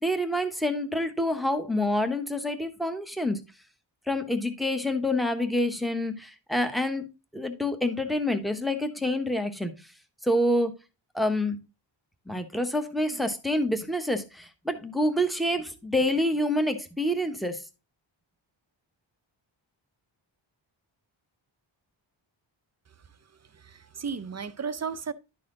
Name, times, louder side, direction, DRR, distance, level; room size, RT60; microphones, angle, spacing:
voice 1, 0.0-3.4 4.1-7.0 7.3-9.7 10.2-10.7 11.1-11.6 12.3-17.6, left 1 dB, ahead, 1.0 m, -27 dB
voice 2, 23.4-25.1, right 6 dB, 35° right, 0.6 m, -34 dB
11.5 x 4.2 x 3.7 m
wide cardioid pair, 105°, 46 cm